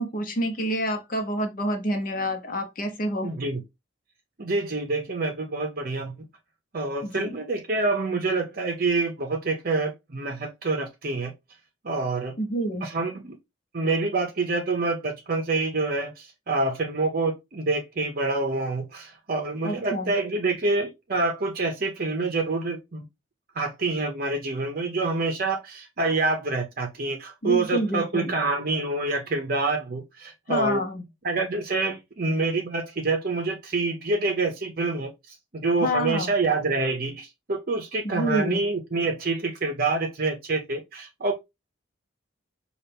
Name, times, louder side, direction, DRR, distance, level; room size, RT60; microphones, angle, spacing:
voice 1, 0.0-3.3 7.0-7.3 12.4-12.9 19.6-20.1 27.4-28.3 30.5-31.0 35.8-36.3 38.0-38.6, equal, 45° left, 0.9 m, -28 dB
voice 2, 3.2-3.6 4.4-6.1 6.7-11.3 11.8-12.3 12.8-13.4 13.7-23.0 23.6-30.8 31.2-35.1 35.5-41.3, right 3 dB, 45° right, 0.7 m, -27 dB
5.6 x 2.4 x 3.4 m
head